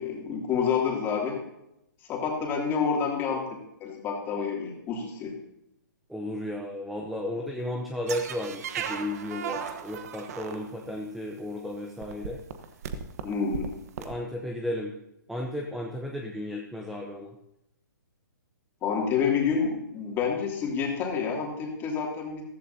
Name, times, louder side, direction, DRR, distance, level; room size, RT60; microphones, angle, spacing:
voice 1, 0.0-1.4 2.1-3.4 3.8-5.4 13.2-13.7 18.8-22.4, left 6 dB, 20° left, -1 dB, 2.8 m, -28 dB
voice 2, 6.1-12.4 14.0-15.0 15.3-17.3, left 1 dB, ahead, 0 dB, 0.8 m, -34 dB
sound 1, 8.1-11.0 11.7-11.8 12.0-14.1, right 7 dB, 50° right, 1.2 m, -36 dB
15.0 x 14.5 x 2.8 m, 0.84 s
hypercardioid pair, 150°, 11 cm